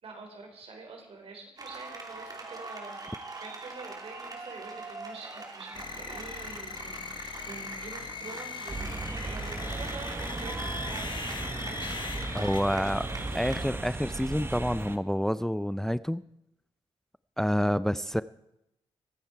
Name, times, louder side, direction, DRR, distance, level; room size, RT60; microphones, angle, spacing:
voice 1, 0.0-8.9 9.2-11.3 11.6-13.4 17.9-18.1, right 3 dB, 65° right, 2 dB, 4.4 m, -46 dB
sound 1, 1.6-13.6, right 3 dB, 35° right, 2.9 m, -43 dB
sound 2, 5.7-12.6, left 5 dB, 50° left, 1.2 m, -40 dB
sound 3, 8.7-15.0, right 2 dB, 20° right, 1.2 m, -36 dB
voice 2, 12.3-13.1 13.3-16.2 17.4-18.2, equal, 5° left, 16 dB, 0.4 m, -28 dB
23.0 x 9.1 x 4.6 m, 0.83 s
cardioid pair, 70°, 11 cm